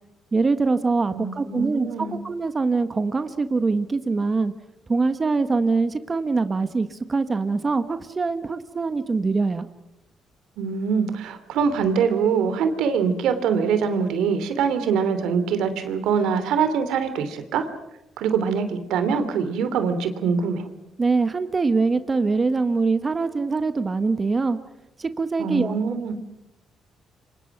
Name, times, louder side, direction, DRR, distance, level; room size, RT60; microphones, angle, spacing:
voice 1, 0.3-4.5 4.9-9.7 21.0-24.6 25.0-25.8, right 4 dB, 30° right, 10 dB, 1.4 m, -23 dB
voice 2, 1.1-2.2 10.6-17.7 18.2-20.7 25.4-26.2, right 6 dB, 85° right, 10 dB, 3.0 m, -24 dB
28.0 x 25.5 x 6.0 m, 0.88 s
cardioid pair, 90°, 0 cm